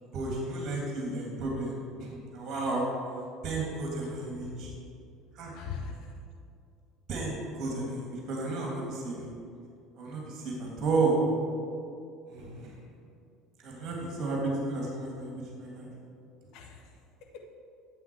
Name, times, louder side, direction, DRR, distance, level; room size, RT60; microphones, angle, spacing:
voice 1, 0.1-2.9 3.4-4.7 5.3-5.6 7.1-9.3 10.0-11.2 12.3-12.8 13.6-15.9, right 3 dB, 40° right, -2 dB, 2.7 m, -32 dB
voice 2, 4.0-4.7 5.4-6.2 16.5-17.0 17.3-17.4, left 5 dB, 60° left, 2 dB, 1.4 m, -42 dB
11.0 x 7.7 x 4.8 m, 2.5 s
hypercardioid pair, 65°, 0 cm